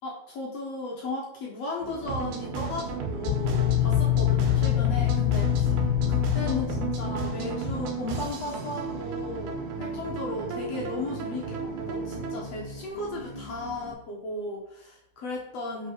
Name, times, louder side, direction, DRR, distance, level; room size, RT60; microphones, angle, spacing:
voice 1, 0.0-5.8 6.1-15.9, left 2 dB, 60° left, -2 dB, 1.9 m, -35 dB
sound 1, 1.8-13.9, equal, 40° right, 1.6 m, -42 dB
sound 2, 2.0-12.4, right 4 dB, 85° right, 3.2 m, -34 dB
sound 3, 3.3-7.9, left 14 dB, 80° left, 2.2 m, -25 dB
6.9 x 5.7 x 4.6 m, 0.73 s
omnidirectional pair, 4.3 m